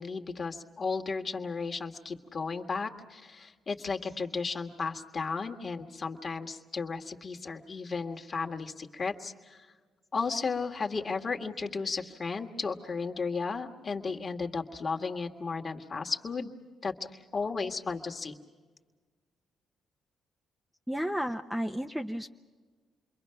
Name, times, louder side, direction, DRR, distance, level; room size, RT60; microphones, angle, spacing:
voice 1, 0.0-9.7 10.1-16.5 16.8-18.4, left 4 dB, 40° left, 3 dB, 1.8 m, -34 dB
voice 2, 20.9-22.3, equal, 5° right, 5 dB, 0.8 m, -32 dB
28.5 x 23.0 x 5.8 m, 1.4 s
cardioid pair, 90°, 0 cm